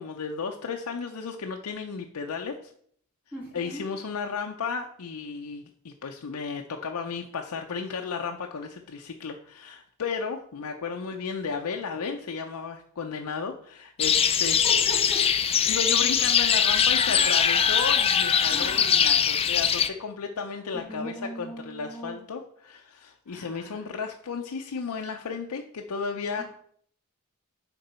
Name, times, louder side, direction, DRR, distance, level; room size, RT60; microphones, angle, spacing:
voice 1, 0.0-2.7 3.5-14.6 15.7-26.4, left 5 dB, 80° left, 3 dB, 0.6 m, -34 dB
voice 2, 3.3-3.9 14.2-14.4 14.6-15.2 17.1-17.3 18.5-19.0 20.8-22.2 23.3-23.9 26.3-26.4, equal, 10° right, -4 dB, 3.1 m, -40 dB
sound 1, 14.0-19.9, left 7 dB, 25° left, 0.4 m, -22 dB
6.7 x 4.5 x 4.3 m, 0.63 s
head